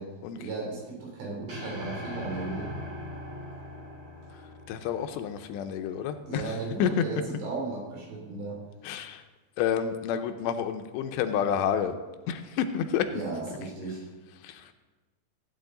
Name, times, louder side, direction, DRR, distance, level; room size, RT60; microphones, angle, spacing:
voice 1, 0.4-2.7 6.3-8.6 13.1-14.1, right 3 dB, 90° right, -3 dB, 5.5 m, -35 dB
sound 1, 1.5-5.9, left 1 dB, 45° right, 4.3 m, -40 dB
voice 2, 4.7-6.5 6.8-7.0 8.8-9.2 9.6-12.0 12.3-13.1 14.4-14.7, left 8 dB, 85° left, 8 dB, 2.8 m, -29 dB
16.0 x 8.8 x 3.9 m, 1.2 s
omnidirectional pair, 4.9 m